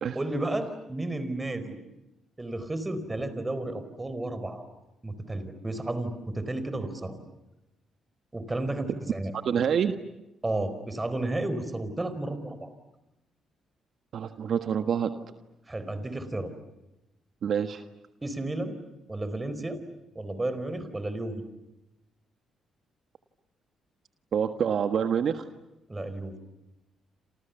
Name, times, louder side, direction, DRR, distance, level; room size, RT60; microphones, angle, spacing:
voice 1, 0.1-1.8 2.4-4.7 5.0-7.2 8.3-9.3 10.4-12.7 15.7-16.5 18.2-18.8 19.1-19.8 20.1-21.4 25.9-26.4, right 2 dB, 15° right, 11 dB, 4.6 m, -32 dB
voice 2, 9.4-9.9 14.1-15.1 17.4-17.8 24.3-25.4, right 7 dB, 60° right, 8 dB, 1.5 m, -26 dB
29.0 x 28.5 x 7.1 m, 0.94 s
cardioid pair, 90°, 0 cm